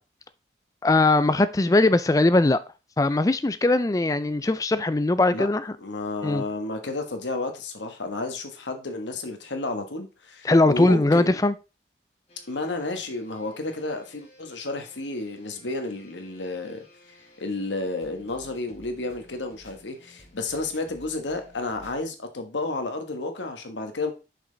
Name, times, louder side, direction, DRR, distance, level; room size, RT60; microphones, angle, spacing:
voice 1, 0.8-2.6 3.0-5.6 6.2-6.4 10.4-11.5, left 2 dB, 20° left, 0.4 m, -20 dB
voice 2, 5.8-11.4 12.5-16.8 17.4-24.1, left 2 dB, 85° left, 1.3 m, -31 dB
sound 1, 12.3-22.0, left 1 dB, 35° left, 2.5 m, -54 dB
6.0 x 5.5 x 3.9 m
head